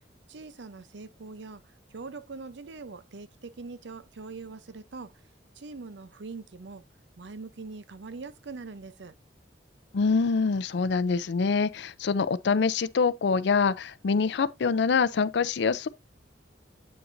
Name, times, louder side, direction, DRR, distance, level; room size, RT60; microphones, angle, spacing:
voice 1, 0.3-1.6 1.9-5.1 5.5-6.8 7.2-9.1, right 4 dB, 70° right, 0.6 m, -42 dB
voice 2, 9.9-15.9, left 5 dB, 70° left, 0.5 m, -25 dB
8.5 x 5.7 x 2.6 m
head